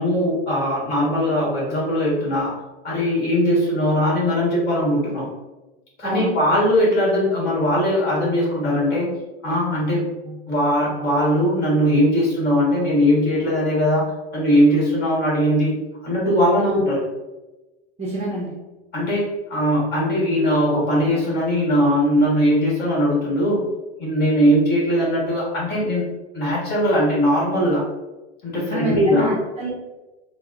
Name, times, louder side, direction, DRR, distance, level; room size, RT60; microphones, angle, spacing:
voice 1, 0.0-2.5 2.8-5.3 6.0-9.1 9.4-15.7 16.0-17.0 18.9-23.6 24.0-26.0 26.3-27.8 28.4-29.3, equal, 30° left, -5 dB, 1.4 m, -20 dB
voice 2, 6.0-6.3 16.6-16.8 18.0-18.5 28.7-29.7, right 1 dB, 20° right, -5 dB, 0.7 m, -26 dB
4.1 x 2.1 x 2.5 m, 1.1 s
hypercardioid pair, 120°, 33 cm